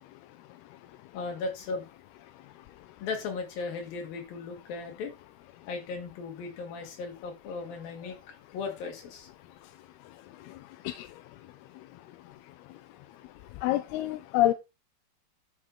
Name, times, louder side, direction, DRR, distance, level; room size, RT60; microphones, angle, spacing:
voice 1, 1.1-1.9 3.0-5.1 5.7-8.2 8.5-9.3, left 4 dB, 60° left, 3.7 m, -36 dB
voice 2, 13.6-14.5, left 14 dB, 80° left, 2.4 m, -26 dB
11.5 x 6.6 x 3.7 m
omnidirectional pair, 4.9 m